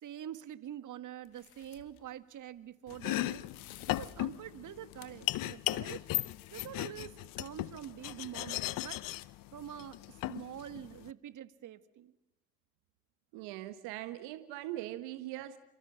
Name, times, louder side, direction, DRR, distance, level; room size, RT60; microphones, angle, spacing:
voice 1, 0.0-6.1 6.5-9.0 9.5-12.1, right 11 dB, 45° right, 1.8 m, -46 dB
sound 1, 1.2-2.0 3.1-5.3 5.6-6.7, left 14 dB, 75° left, 2.0 m, -52 dB
Domestic sounds home sounds, 2.9-11.1, left 17 dB, 50° left, 0.9 m, -37 dB
voice 2, 13.3-15.6, right 15 dB, 65° right, 1.7 m, -41 dB
29.5 x 26.5 x 6.4 m
hypercardioid pair, 70°, 43 cm